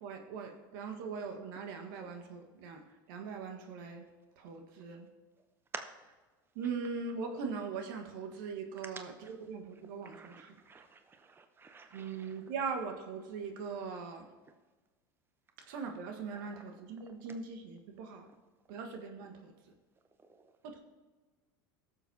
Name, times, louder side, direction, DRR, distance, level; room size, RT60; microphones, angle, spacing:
voice 1, 0.0-2.8 3.1-4.1 4.4-5.1 6.5-10.5 11.9-14.3 15.7-18.3 18.7-19.5, right 5 dB, 70° right, 4 dB, 1.5 m, -40 dB
voice 2, 10.1-10.4 10.7-10.9 11.6-12.1, right 5 dB, 20° right, 7 dB, 0.8 m, -45 dB
17.0 x 7.2 x 2.8 m, 1.3 s
hypercardioid pair, 85°, 12 cm